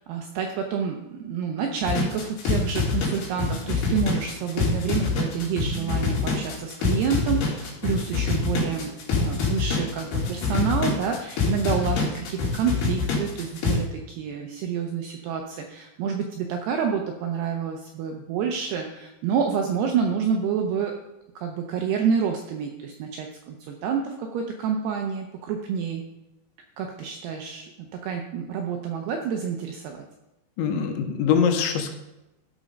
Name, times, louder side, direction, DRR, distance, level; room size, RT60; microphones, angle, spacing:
voice 1, 0.0-20.9 21.4-26.1 26.8-30.1, right 6 dB, 80° right, 3 dB, 2.4 m, -28 dB
sound 1, 1.8-13.8, left 4 dB, 60° left, 4.0 m, -26 dB
voice 2, 30.6-31.9, left 7 dB, 80° left, 4 dB, 3.3 m, -23 dB
13.5 x 5.0 x 5.2 m, 0.95 s
omnidirectional pair, 5.5 m